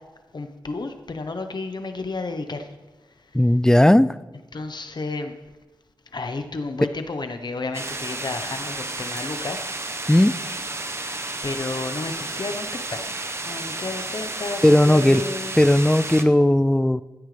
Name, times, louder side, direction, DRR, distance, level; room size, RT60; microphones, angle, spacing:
voice 1, 0.3-2.7 4.5-5.3 6.1-9.7 11.4-15.5, left 3 dB, 60° left, 7 dB, 1.0 m, -32 dB
voice 2, 3.3-4.1 10.1-10.3 14.6-15.2 15.6-17.0, left 1 dB, 10° left, 16 dB, 0.4 m, -16 dB
sound 1, 7.7-16.2, right 2 dB, 30° right, 1.0 m, -32 dB
15.5 x 13.0 x 3.4 m, 1.2 s
wide cardioid pair, 95°, 8 cm